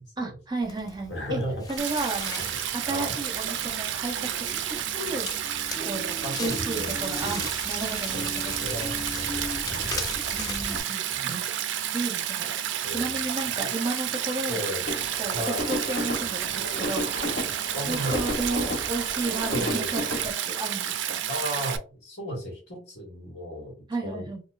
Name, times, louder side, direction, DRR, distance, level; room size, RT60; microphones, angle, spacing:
voice 1, 0.2-1.4 1.7-2.5 2.7-8.6 10.3-11.4 11.9-12.6 12.9-14.6 15.2-17.1 17.5-21.2 23.9-24.4, right 2 dB, 25° right, 3 dB, 0.6 m, -33 dB
Crackle, 0.6-10.8, left 2 dB, 20° left, 0.4 m, -38 dB
voice 2, 1.1-1.6 2.4-2.6 2.9-3.1 6.2-7.5 8.1-9.4 9.7-10.0 10.7-10.8 11.1-11.3 12.8-13.1 14.5-14.8 15.3-15.6 17.7-18.2 19.5-19.9 21.3-23.7 24.0-24.3, equal, 70° left, -1 dB, 1.5 m, -34 dB
Stream, 1.8-21.8, right 10 dB, 85° right, 0.4 m, -31 dB
sound 1, 14.9-20.3, left 1 dB, 50° left, 0.9 m, -33 dB
4.2 x 2.3 x 2.4 m, 0.34 s
head